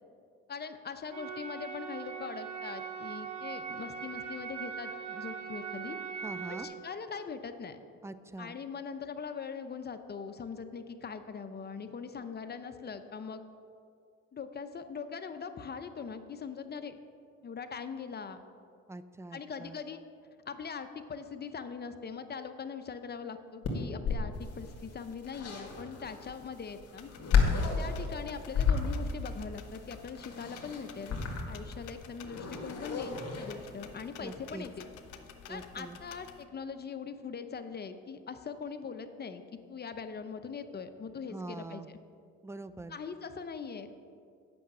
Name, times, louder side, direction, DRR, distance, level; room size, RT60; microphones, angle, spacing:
voice 1, 0.5-6.0 6.5-7.8 8.4-13.4 14.3-17.0 17.4-18.4 19.3-20.0 20.5-27.1 27.8-34.9 35.5-39.4 39.7-42.0 42.9-44.0, left 6 dB, 35° left, 9 dB, 0.7 m, -41 dB
sound 1, 1.1-6.6, right 6 dB, 75° right, 1.6 m, -40 dB
voice 2, 6.2-6.7 8.0-8.7 18.9-19.8 34.2-34.7 35.5-36.0 41.3-41.9 42.4-43.0, right 2 dB, 10° right, 12 dB, 0.4 m, -44 dB
sound 2, 23.6-34.0, left 6 dB, 55° left, 1.9 m, -32 dB
sound 3, 27.0-36.4, left 6 dB, 90° left, 0.7 m, -51 dB
8.6 x 5.8 x 7.5 m, 2.3 s
cardioid pair, 90°, 30 cm